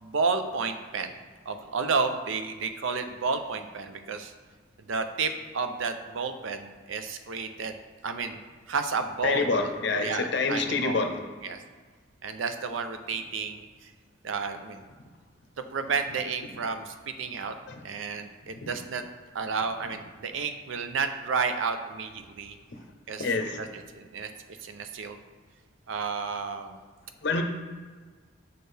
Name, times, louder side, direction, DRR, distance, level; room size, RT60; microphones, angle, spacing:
voice 1, 0.0-1.1 1.5-4.3 4.8-9.7 10.0-11.0 11.4-11.6 12.2-13.9 14.2-14.9 15.6-17.5 17.8-19.0 19.3-22.6 23.1-23.3 23.6-25.2 25.9-26.8, right 5 dB, 75° right, 8 dB, 0.5 m, -31 dB
voice 2, 9.2-11.1 17.7-17.8 18.6-18.7 23.2-23.6 27.2-27.4, left 3 dB, 60° left, 5 dB, 0.6 m, -27 dB
6.4 x 4.4 x 3.3 m, 1.5 s
head